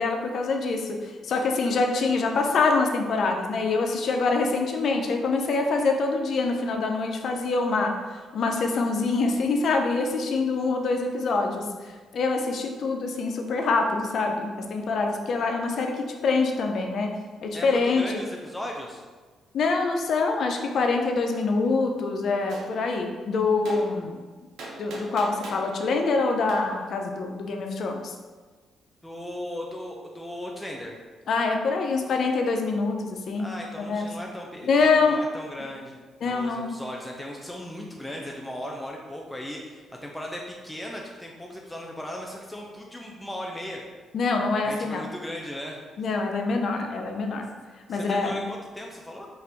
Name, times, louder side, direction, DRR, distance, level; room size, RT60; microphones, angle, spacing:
voice 1, 0.0-8.0 8.3-18.1 19.5-24.1 24.8-28.1 31.3-34.1 34.6-35.2 36.2-36.7 44.1-45.0 46.0-47.5 47.9-48.4, left 3 dB, 60° left, 3 dB, 0.5 m, -25 dB
voice 2, 17.5-19.0 29.0-30.9 33.4-43.8 44.6-45.8 47.9-49.3, left 1 dB, 5° left, -1 dB, 0.4 m, -37 dB
Gunshot gunfire, 22.5-22.7 23.7-23.8 24.6-25.7 26.5-26.6, right 2 dB, 80° right, 0.7 m, -39 dB
4.3 x 2.5 x 3.4 m, 1.4 s
cardioid pair, 90°, 0 cm